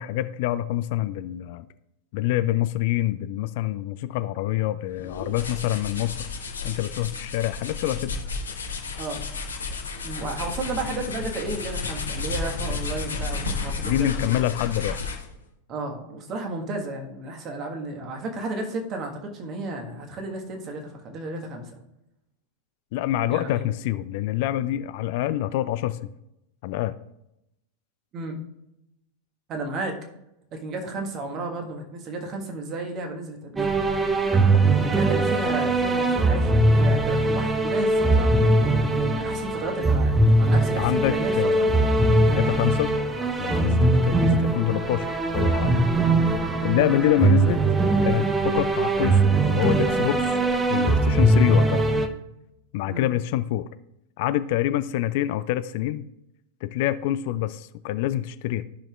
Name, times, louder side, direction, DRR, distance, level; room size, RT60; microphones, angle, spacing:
voice 1, 0.0-1.7 2.1-6.3 6.6-8.1 13.8-15.0 22.9-26.1 26.6-26.9 34.5-34.7 40.8-41.7 42.3-42.9 43.4-45.8 46.6-47.6 48.0-50.4 50.7-51.8 52.7-53.7 54.2-56.1 56.6-58.6, left 13 dB, 50° left, 13 dB, 0.3 m, -26 dB
sound 1, 4.9-15.4, left 4 dB, 70° left, 1.2 m, -32 dB
voice 2, 10.0-14.3 15.7-21.8 23.3-23.6 28.1-28.4 29.5-30.0 30.5-33.7 34.8-38.3 38.9-41.7 46.7-46.9 52.9-53.1, right 2 dB, 35° right, 2 dB, 1.5 m, -33 dB
sound 2, 33.6-52.1, right 2 dB, 10° right, 0.7 m, -21 dB
13.5 x 5.8 x 2.4 m, 0.86 s
figure-of-eight pair, 90°, 0 cm